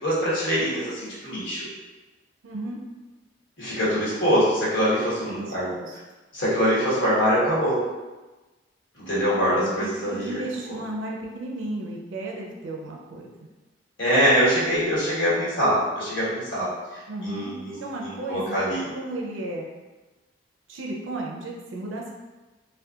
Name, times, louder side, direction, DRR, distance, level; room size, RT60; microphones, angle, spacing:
voice 1, 0.0-1.7 3.6-5.7 6.3-7.8 8.9-10.4 10.7-10.8 14.0-18.9, equal, 85° left, -9 dB, 1.2 m, -24 dB
voice 2, 2.4-2.8 5.3-6.0 9.3-13.3 17.1-18.6 18.9-19.7 20.7-22.1, right 1 dB, 85° right, -1 dB, 0.4 m, -34 dB
2.7 x 2.2 x 2.3 m, 1.2 s
head